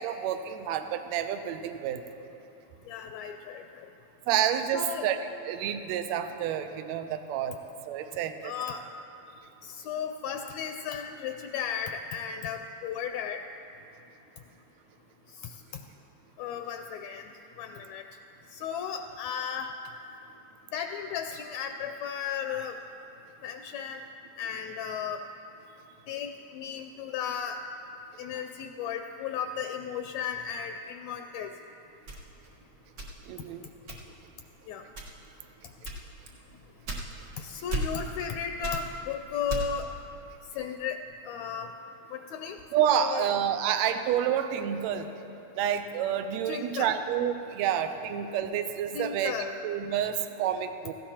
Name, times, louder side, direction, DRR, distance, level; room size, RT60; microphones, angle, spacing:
voice 1, 0.0-2.0 4.3-7.6 7.9-8.5 33.3-33.7 42.7-45.1 45.6-49.3 49.6-50.9, right 9 dB, 80° right, 8 dB, 1.8 m, -29 dB
voice 2, 2.9-3.9 4.7-5.1 8.4-8.8 9.6-13.4 15.4-15.5 16.4-17.3 17.6-18.0 18.5-19.7 20.7-22.8 23.4-24.0 24.4-25.2 26.1-27.6 28.2-31.5 34.7-34.8 37.4-39.9 40.6-41.0 41.2-41.7 42.1-42.6 43.0-43.3 46.5-47.0 48.9-49.5, left 7 dB, 80° left, 5 dB, 1.7 m, -35 dB
sound 1, 32.1-33.5 33.9-34.3 34.9-35.4 35.8-37.4 37.7-38.3 38.6-39.9, right 1 dB, 45° right, 1.7 m, -35 dB
17.5 x 15.5 x 2.9 m, 2.9 s
omnidirectional pair, 3.4 m